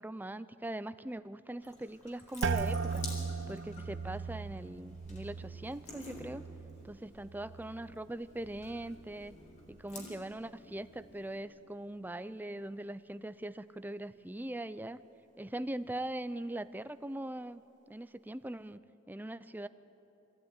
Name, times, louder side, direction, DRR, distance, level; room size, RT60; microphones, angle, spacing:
voice 1, 0.0-3.0 3.5-6.4 6.8-9.4 9.7-15.0 15.4-17.6 17.9-18.8 19.1-19.7, right 1 dB, 10° right, 13 dB, 0.5 m, -41 dB
Water tap faucet / Sink (filling or washing) / Drip, 1.6-11.4, left 1 dB, 40° left, 4.2 m, -51 dB
sound 1, 2.4-8.1 8.4-9.1 9.6-10.0, right 5 dB, 65° right, 0.6 m, -38 dB
24.0 x 15.0 x 9.6 m, 2.9 s
head